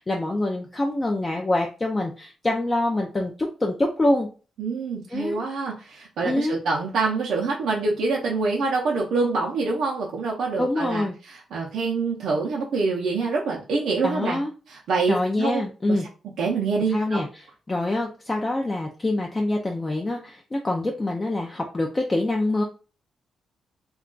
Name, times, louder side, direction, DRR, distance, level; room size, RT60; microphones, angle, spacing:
voice 1, 0.0-4.3 5.1-5.4 6.2-6.6 10.6-11.1 14.0-14.5 15.1-16.1 16.8-22.6, left 2 dB, 20° left, 1 dB, 0.3 m, -25 dB
voice 2, 4.6-14.4 14.7-15.6 15.9-16.0 16.4-17.2, right 4 dB, 75° right, -3 dB, 0.5 m, -26 dB
2.3 x 2.2 x 3.7 m, 0.36 s
cardioid pair, 140°, 0 cm